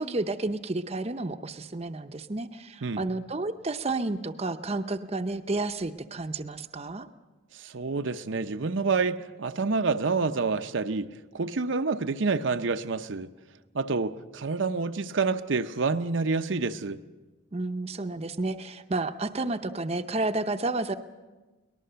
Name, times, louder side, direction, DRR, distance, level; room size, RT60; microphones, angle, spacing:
voice 1, 0.0-7.1 17.5-21.0, right 2 dB, 30° right, 0.7 m, -31 dB
voice 2, 7.5-13.3 13.7-17.0, right 4 dB, 70° right, 0.7 m, -28 dB
23.0 x 19.5 x 6.8 m
head